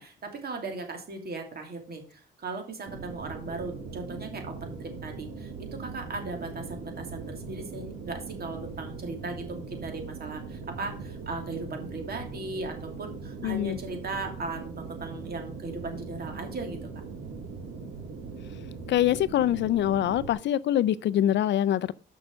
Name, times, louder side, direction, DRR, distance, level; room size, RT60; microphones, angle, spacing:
voice 1, 0.0-16.9, right 3 dB, 50° right, 2.8 m, -37 dB
sound 1, 2.8-20.3, right 4 dB, 90° right, 1.8 m, -40 dB
voice 2, 13.4-13.8 18.9-21.9, left 11 dB, 65° left, 0.5 m, -24 dB
6.3 x 6.2 x 6.7 m
cardioid pair, 90°, 20 cm